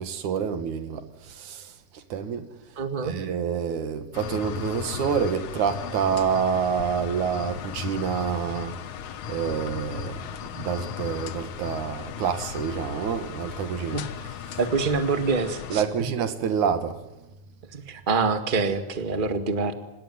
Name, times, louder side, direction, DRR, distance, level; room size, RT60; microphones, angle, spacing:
voice 1, 0.0-2.5 3.0-8.8 9.3-10.2 10.5-14.0 14.5-14.6 15.7-17.3, right 7 dB, 85° right, 3.3 m, -28 dB
voice 2, 2.8-3.1 13.9-14.0 14.6-15.8 17.7-19.7, right 4 dB, 20° right, 1.7 m, -25 dB
sound 1, 4.1-15.8, left 8 dB, 80° left, 2.8 m, -36 dB
26.5 x 19.0 x 9.6 m
omnidirectional pair, 3.3 m